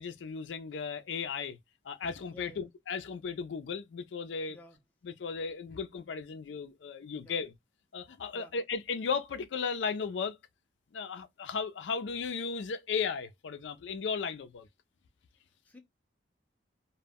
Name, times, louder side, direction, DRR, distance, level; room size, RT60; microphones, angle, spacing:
voice 1, 0.0-1.6 1.9-4.6 5.0-7.5 7.9-10.4 10.9-14.7, left 5 dB, 90° left, 0.4 m, -35 dB
voice 2, 2.3-2.6 4.5-4.8 7.2-7.4 8.3-8.5 15.6-15.8, left 1 dB, 10° left, 0.5 m, -52 dB
2.1 x 2.0 x 3.4 m
head